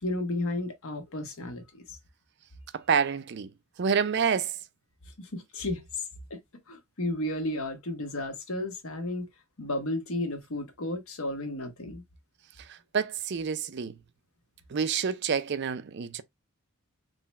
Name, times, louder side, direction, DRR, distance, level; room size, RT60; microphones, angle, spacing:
voice 1, 0.0-2.0 5.2-6.0 6.3-6.4 6.7-9.3 9.6-12.0, left 1 dB, 75° left, 1.2 m, -33 dB
voice 2, 2.7-3.5 3.8-4.5 12.7-13.9 14.7-16.2, right 6 dB, 50° right, 0.4 m, -28 dB
3.9 x 2.2 x 4.1 m
head